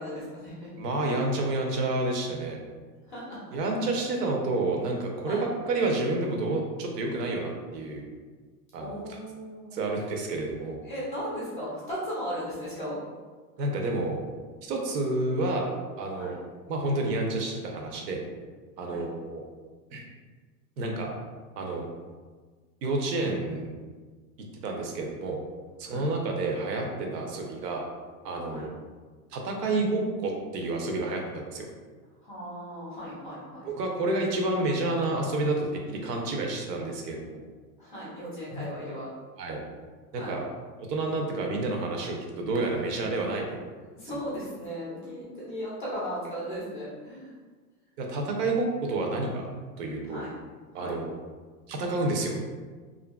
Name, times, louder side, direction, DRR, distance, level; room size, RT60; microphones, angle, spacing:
voice 1, 0.0-0.7 3.1-3.4 5.3-5.5 8.8-9.9 10.8-13.0 16.2-16.4 18.8-19.0 25.8-26.1 28.5-28.7 32.2-33.7 37.8-39.1 40.2-40.4 42.9-43.1 44.0-47.3 50.1-50.3 50.7-51.0, equal, 35° left, -7 dB, 0.4 m, -37 dB
voice 2, 0.8-2.6 3.5-8.0 8.7-9.2 9.7-10.8 13.6-14.2 14.6-15.7 16.0-18.2 18.8-19.4 19.9-20.0 20.8-21.1 21.6-21.9 22.8-23.7 24.6-25.4 25.8-27.8 28.2-28.7 29.3-31.7 33.6-37.4 38.5-38.7 39.4-39.6 40.1-40.5 40.9-43.6 48.0-49.5 49.8-50.2 50.7-51.1 51.7-52.4, right 2 dB, 75° right, 1 dB, 0.7 m, -29 dB
2.7 x 2.5 x 2.2 m, 1.4 s
supercardioid pair, 180°, 48 cm